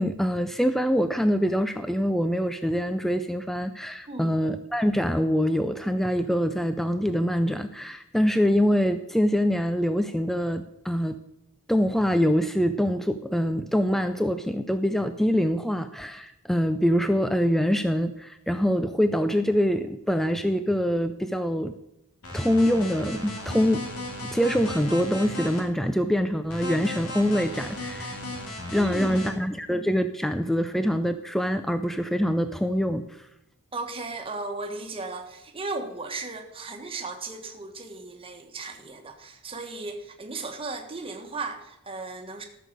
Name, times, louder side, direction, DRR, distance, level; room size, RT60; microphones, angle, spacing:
voice 1, 0.0-11.2 11.7-21.7 22.3-23.9 24.2-28.2 28.7-33.1, equal, ahead, 9 dB, 0.4 m, -24 dB
sound 1, 22.2-25.6 26.5-29.3, left 1 dB, 70° left, 2.8 m, -35 dB
voice 2, 28.7-29.4 33.7-42.4, right 3 dB, 25° right, 4 dB, 1.4 m, -36 dB
14.0 x 6.6 x 6.6 m, 0.87 s
head